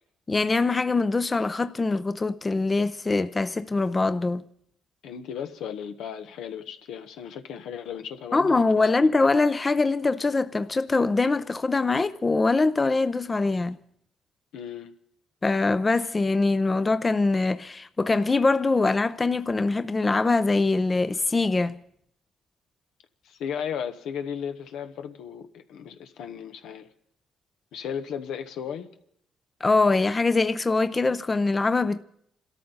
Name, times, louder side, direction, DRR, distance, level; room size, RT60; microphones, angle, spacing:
voice 1, 0.3-4.4 8.3-13.8 15.4-21.8 29.6-32.0, left 3 dB, 25° left, 0.6 m, -23 dB
voice 2, 5.0-8.7 14.5-14.9 23.2-26.9 27.7-28.9, left 8 dB, 85° left, 1.1 m, -35 dB
26.5 x 13.5 x 4.0 m
cardioid pair, 90°, 0 cm